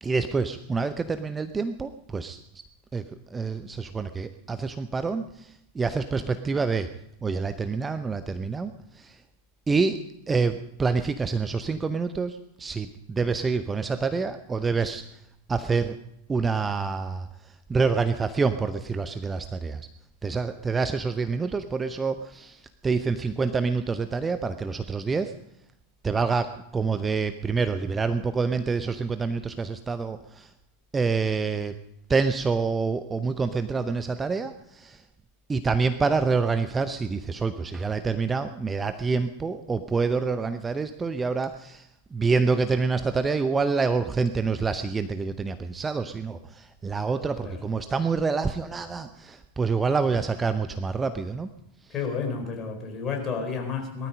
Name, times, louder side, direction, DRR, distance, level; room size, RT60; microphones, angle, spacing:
voice 1, 0.0-2.4 2.9-6.9 7.2-9.2 9.7-15.0 15.5-16.0 16.3-19.9 20.2-25.3 26.0-30.5 30.9-31.8 32.1-35.0 35.5-51.5, right 4 dB, 15° right, 10 dB, 0.7 m, -27 dB
voice 2, 51.9-54.1, left 5 dB, 25° left, 3 dB, 4.3 m, -31 dB
19.5 x 13.0 x 5.3 m, 0.81 s
figure-of-eight pair, 90°, 0 cm